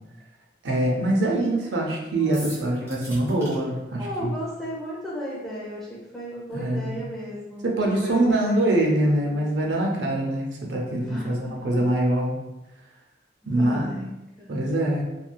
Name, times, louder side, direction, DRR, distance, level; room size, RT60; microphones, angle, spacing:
voice 1, 0.6-4.3 6.5-7.0 7.6-12.4 13.5-13.9 14.5-15.0, right 1 dB, 75° right, -1 dB, 0.6 m, -24 dB
voice 2, 2.2-2.6 4.0-9.4 11.0-11.9 13.4-14.1 14.4-14.7, equal, ahead, -7 dB, 0.7 m, -35 dB
sound 1, 2.3-3.5, right 1 dB, 15° right, 1.0 m, -39 dB
3.3 x 2.6 x 2.3 m, 0.99 s
head